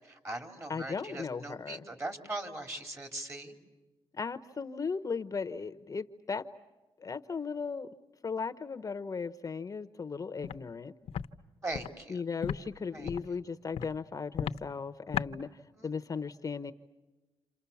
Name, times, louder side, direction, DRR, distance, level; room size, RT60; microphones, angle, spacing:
voice 1, 0.0-3.6 11.6-12.2 12.9-13.4 15.8-15.9, right 2 dB, 25° right, 6 dB, 3.9 m, -40 dB
voice 2, 0.7-1.8 4.2-6.4 7.0-7.9 8.2-10.9 12.1-15.5 15.8-16.7, left 5 dB, 35° left, 9 dB, 0.9 m, -36 dB
Walk footsteps, 10.4-10.6 11.1-11.3 11.7-11.9 12.4-12.6 13.0-13.3 13.7-13.9 14.3-14.6 15.1-15.3, left 9 dB, 70° left, 0.9 m, -34 dB
29.0 x 28.0 x 7.2 m, 1.1 s
cardioid pair, 90°, 10 cm